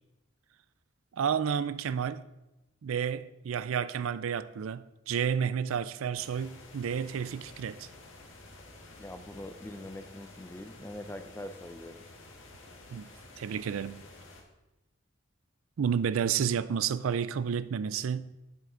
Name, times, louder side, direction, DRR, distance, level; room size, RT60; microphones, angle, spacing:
voice 1, 1.1-2.2 2.8-7.9 12.9-13.1 13.4-14.0 15.8-18.3, right 7 dB, 85° right, 0.4 m, -31 dB
sound 1, 6.1-14.4, left 2 dB, 70° left, 1.6 m, -51 dB
voice 2, 9.0-12.0, left 1 dB, 10° left, 0.5 m, -43 dB
9.3 x 8.0 x 3.8 m
head